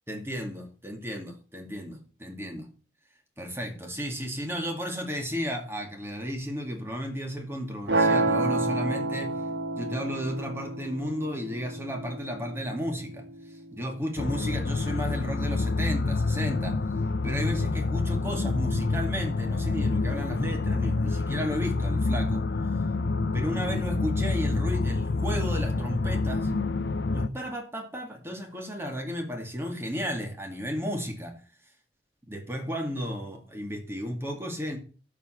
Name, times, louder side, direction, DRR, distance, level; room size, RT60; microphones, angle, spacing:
voice 1, 0.1-2.7 3.4-9.4 9.7-13.3 13.7-16.8 17.2-22.4 23.3-26.6 27.1-31.4 32.3-34.8, equal, 15° right, 3 dB, 2.2 m, -33 dB
sound 1, 7.9-13.9, right 2 dB, 70° right, 2.4 m, -29 dB
sound 2, 14.2-27.3, left 3 dB, 70° left, 0.6 m, -27 dB
12.0 x 5.2 x 5.8 m, 0.37 s
head